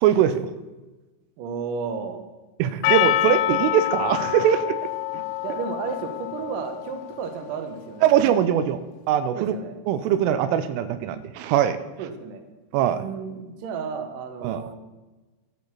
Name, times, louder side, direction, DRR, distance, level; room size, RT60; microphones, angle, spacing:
voice 1, 0.0-0.5 2.6-4.8 5.1-5.2 8.0-8.8 9.1-9.5 9.9-11.8 12.7-13.0 14.4-14.6, right 10 dB, 85° right, 13 dB, 3.2 m, -21 dB
voice 2, 1.4-2.2 3.5-3.6 5.4-8.2 9.3-9.7 12.0-12.4 13.0-14.8, right 6 dB, 70° right, 6 dB, 2.1 m, -32 dB
Percussion, 2.8-7.4, left 14 dB, 80° left, 2.8 m, -26 dB
13.0 x 8.4 x 7.2 m, 1.2 s
omnidirectional pair, 5.7 m